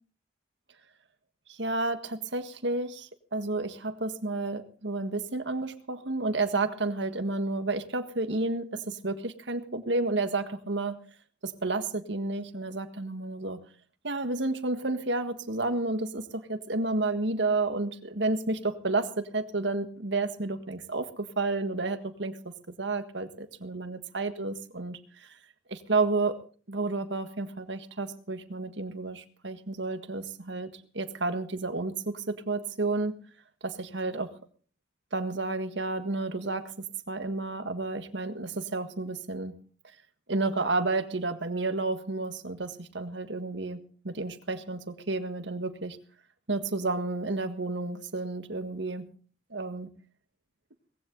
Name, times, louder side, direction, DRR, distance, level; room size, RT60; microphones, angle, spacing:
voice 1, 1.5-11.0 11.4-13.6 14.0-25.4 25.7-26.4 26.7-30.7 30.9-33.1 33.6-34.3 35.1-36.7 37.1-39.6 40.3-46.0 46.5-49.1 49.5-49.9, right 3 dB, 80° right, 9 dB, 1.7 m, -31 dB
19.5 x 15.5 x 3.9 m, 0.41 s
head